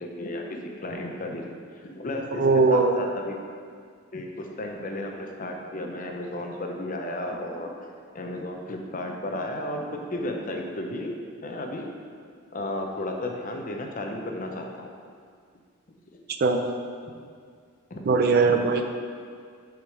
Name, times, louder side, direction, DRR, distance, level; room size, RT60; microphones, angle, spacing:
voice 1, 0.0-1.5 1.8-3.4 4.1-7.7 8.1-11.1 11.4-11.9 12.5-14.9 16.1-16.2 17.9-18.0 18.5-18.6, left 1 dB, 35° left, 2 dB, 0.6 m, -33 dB
voice 2, 2.3-2.9 16.4-16.6 18.1-18.9, right 4 dB, 45° right, 5 dB, 0.4 m, -20 dB
6.3 x 4.8 x 4.9 m, 2.1 s
head